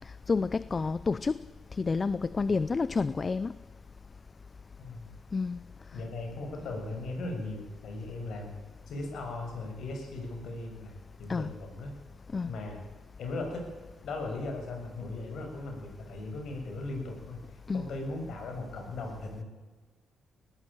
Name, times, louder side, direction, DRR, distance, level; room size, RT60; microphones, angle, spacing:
voice 1, 0.3-1.4 1.8-3.5 5.3-5.6 11.3-11.5 12.3-12.5 17.7-17.9, left 4 dB, 30° left, 0.6 m, -29 dB
voice 2, 5.9-12.0 12.5-12.8 13.2-13.7 14.0-19.4, left 2 dB, 70° left, 7.1 m, -38 dB
19.5 x 15.0 x 9.2 m
cardioid pair, 90°, 0 cm